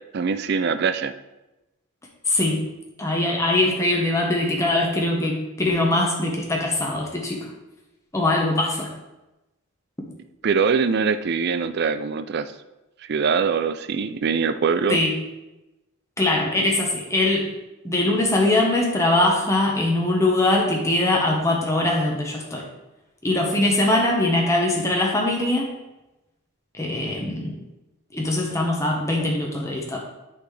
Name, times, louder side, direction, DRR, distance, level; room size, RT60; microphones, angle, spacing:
voice 1, 0.1-1.1 10.4-12.5 13.0-15.0 16.4-16.7, right 5 dB, 45° right, 11 dB, 0.4 m, -23 dB
voice 2, 2.3-2.6 3.0-7.5 8.1-8.9 14.9-15.1 16.2-17.5 17.8-22.6 23.2-25.7 26.8-27.6 28.1-30.0, left 2 dB, 15° left, -1 dB, 1.0 m, -22 dB
11.0 x 4.1 x 3.3 m, 1.0 s
head